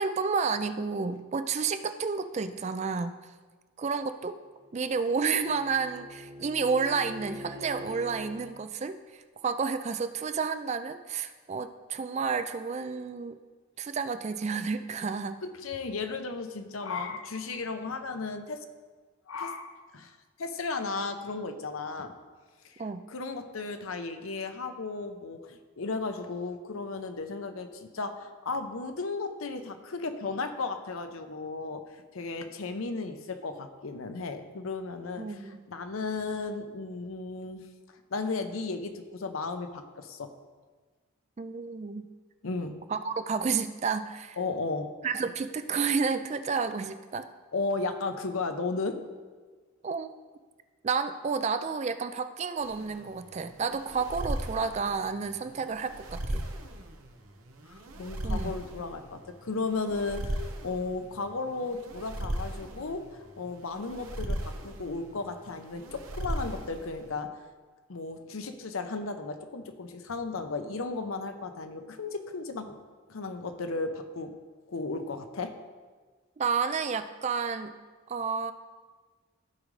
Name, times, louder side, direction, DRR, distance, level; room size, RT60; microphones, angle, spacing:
voice 1, 0.0-3.2 3.8-4.4 4.7-13.4 13.8-15.4 22.8-23.0 35.2-35.6 41.4-42.1 42.9-44.4 45.0-47.3 49.8-50.1 50.8-56.4 58.2-58.5 76.4-77.7 78.1-78.5, right 5 dB, 30° right, 10 dB, 0.3 m, -31 dB
Bowed string instrument, 4.4-8.5, left 1 dB, 55° right, 2.1 m, -45 dB
voice 2, 15.4-18.6 19.3-22.1 22.6-22.8 23.1-31.8 32.1-37.7 38.1-40.3 42.4-42.8 44.4-44.9 47.5-49.0 57.7-63.1 63.4-67.3 67.9-72.8 73.1-74.3 74.7-75.6, left 3 dB, 80° left, 7 dB, 0.7 m, -35 dB
sound 1, 52.6-67.1, right 1 dB, 90° right, 1.0 m, -37 dB
14.5 x 5.1 x 3.2 m, 1.4 s
head